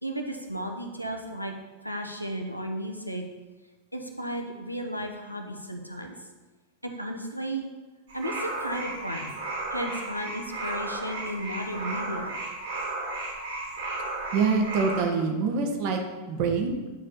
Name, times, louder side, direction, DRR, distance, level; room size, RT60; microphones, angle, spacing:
voice 1, 0.0-1.5 1.8-3.2 3.9-6.1 6.8-7.7 8.1-9.3 9.7-12.3, equal, 90° left, 3 dB, 0.9 m, -34 dB
sound 1, 8.1-15.0, right 2 dB, 65° right, 2.8 m, -34 dB
voice 2, 14.3-16.0 16.3-16.7, right 5 dB, 45° right, 3 dB, 1.2 m, -25 dB
9.4 x 5.0 x 4.2 m, 1.2 s
figure-of-eight pair, 90°, 0 cm